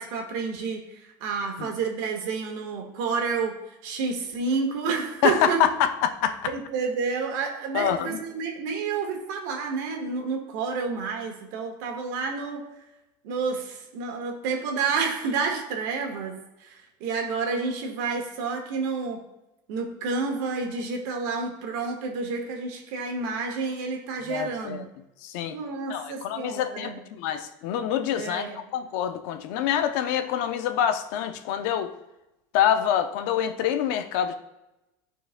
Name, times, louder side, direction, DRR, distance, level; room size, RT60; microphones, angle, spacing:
voice 1, 0.0-3.5 3.8-5.7 6.4-12.6 13.2-19.2 19.7-24.9 25.5-27.0 28.1-28.6, right 4 dB, 70° right, 2 dB, 1.5 m, -29 dB
voice 2, 5.2-6.4 7.7-8.2 24.3-24.8 25.2-25.5 25.9-26.9 27.2-28.4 28.7-31.9 32.5-34.3, left 9 dB, 70° left, 8 dB, 0.6 m, -26 dB
13.5 x 4.5 x 2.2 m, 0.93 s
cardioid pair, 165°, 10 cm